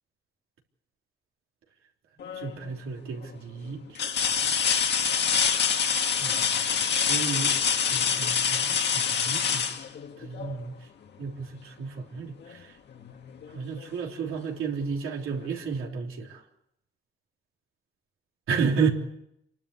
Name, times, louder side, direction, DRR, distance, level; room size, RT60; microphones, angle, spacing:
sound 1, 2.2-2.7 3.2-3.3 3.9-10.6 12.4-12.5 13.0-14.0 15.4-15.5, left 7 dB, 55° left, 1.6 m, -26 dB
voice 1, 2.4-3.8 6.2-6.6 7.1-7.6 7.9-9.6 10.2-10.7 11.2-12.6 13.5-16.4 18.5-18.9, right 5 dB, 80° right, 1 dB, 3.5 m, -32 dB
28.0 x 12.0 x 8.4 m, 0.81 s
wide cardioid pair, 160°, 21 cm